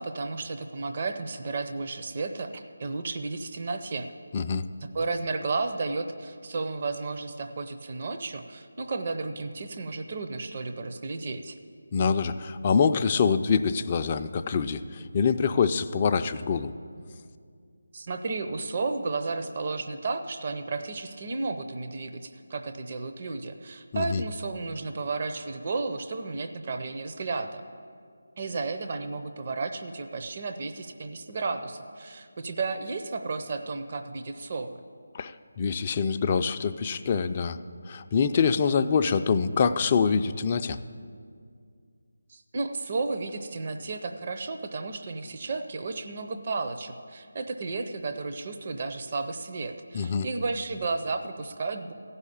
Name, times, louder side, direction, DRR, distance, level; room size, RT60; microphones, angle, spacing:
voice 1, 0.0-4.1 4.9-11.6 17.9-27.6 28.4-34.8 42.3-51.9, right 3 dB, 40° right, 6 dB, 0.6 m, -33 dB
voice 2, 11.9-16.7 23.9-24.2 35.1-37.6 37.9-40.8 49.9-50.3, left 6 dB, 30° left, 8 dB, 0.4 m, -25 dB
15.0 x 5.6 x 8.4 m, 2.2 s
figure-of-eight pair, 160°, 0 cm